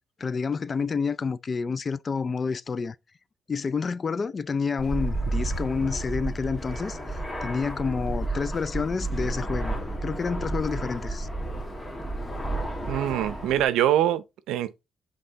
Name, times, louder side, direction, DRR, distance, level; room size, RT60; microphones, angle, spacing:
voice 1, 0.2-3.0 3.5-7.0 7.4-11.3, left 5 dB, 40° left, 0.4 m, -29 dB
Fixed-wing aircraft airplane, 4.8-13.6, right 2 dB, 10° left, 1.8 m, -31 dB
voice 2, 12.8-14.8, right 12 dB, 90° right, 0.6 m, -24 dB
7.8 x 3.5 x 3.9 m
cardioid pair, 90°, 0 cm